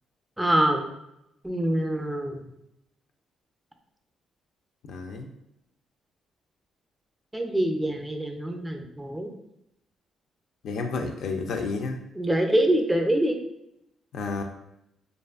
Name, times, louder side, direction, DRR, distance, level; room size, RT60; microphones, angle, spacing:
voice 1, 0.4-0.9 1.4-2.4 7.3-9.3 12.2-13.4, right 1 dB, 10° right, 3 dB, 0.4 m, -25 dB
voice 2, 4.8-5.3 10.6-12.0 14.1-14.4, left 4 dB, 70° left, 4 dB, 0.3 m, -31 dB
2.5 x 2.4 x 2.4 m, 0.81 s
cardioid pair, 90°, 0 cm